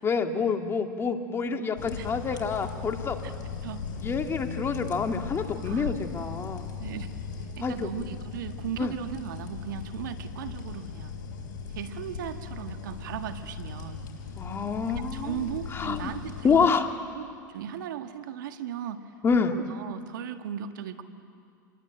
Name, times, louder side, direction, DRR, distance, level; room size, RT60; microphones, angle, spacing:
voice 1, 0.0-3.2 4.0-6.7 7.6-7.9 8.8-8.9 14.4-15.3 15.7-16.1 16.4-16.9 19.2-19.5, left 5 dB, 25° left, 5 dB, 2.0 m, -27 dB
sound 1, 1.8-16.7, left 6 dB, 75° left, 4.6 m, -38 dB
voice 2, 2.0-2.4 3.2-3.3 3.6-3.8 5.6-5.9 6.8-7.1 7.6-11.1 11.7-14.0 14.9-16.8 17.1-19.1 19.5-21.0, right 9 dB, 75° right, 8 dB, 1.7 m, -37 dB
28.0 x 21.5 x 9.0 m, 2.3 s
hypercardioid pair, 110°, 11 cm